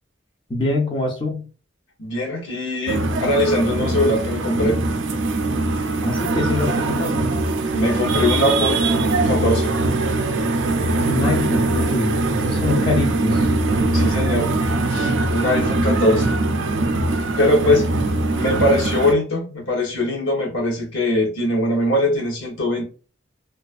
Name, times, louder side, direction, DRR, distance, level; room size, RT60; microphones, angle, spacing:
voice 1, 0.5-1.5 6.0-7.3 11.0-13.5, left 2 dB, 25° left, 0.4 m, -24 dB
voice 2, 2.0-4.8 7.7-8.9 9.3-9.7 13.9-14.5 14.9-16.3 17.4-17.8 18.3-22.8, left 1 dB, 75° left, 0.8 m, -21 dB
sound 1, 2.9-19.1, right 2 dB, 70° right, 0.4 m, -21 dB
2.4 x 2.4 x 2.3 m
head